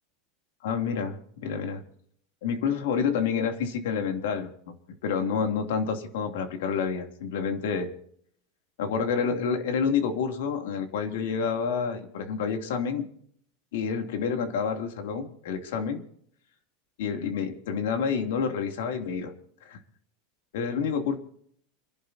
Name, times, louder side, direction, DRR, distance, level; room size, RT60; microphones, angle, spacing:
voice 1, 0.6-1.8 2.4-4.7 5.0-7.9 8.8-13.1 13.7-16.0 17.0-19.3 19.6-19.8 20.5-21.2, left 6 dB, 80° left, 5 dB, 2.9 m, -28 dB
29.5 x 11.5 x 2.8 m, 0.66 s
supercardioid pair, 165°, 0 cm